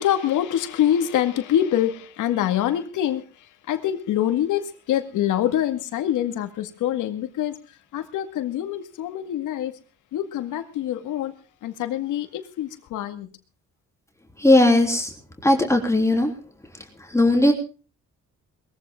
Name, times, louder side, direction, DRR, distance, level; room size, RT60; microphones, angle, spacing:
voice 1, 0.0-3.2 3.7-7.5 7.9-9.7 10.1-11.3 11.6-13.3, left 11 dB, 85° left, 2.0 m, -25 dB
voice 2, 14.4-15.1 15.4-16.3 16.7-17.5, left 1 dB, 10° left, 3.5 m, -18 dB
21.0 x 15.0 x 3.8 m
cardioid pair, 90°, 30 cm